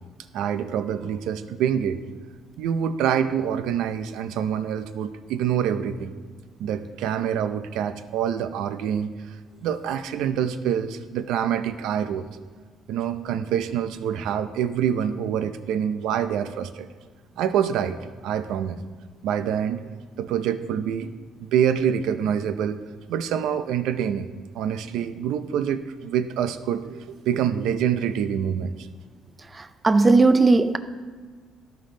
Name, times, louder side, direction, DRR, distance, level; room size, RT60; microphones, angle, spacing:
voice 1, 0.3-2.0 2.6-6.1 6.6-9.4 9.6-12.3 12.9-16.9 17.4-18.0 18.2-18.8 19.2-19.9 20.2-21.1 21.4-22.8 23.1-24.3 24.5-28.9, right 9 dB, 80° right, 0.5 m, -26 dB
voice 2, 29.8-30.8, right 3 dB, 20° right, 0.4 m, -16 dB
13.0 x 5.4 x 3.8 m
cardioid pair, 140°, 0 cm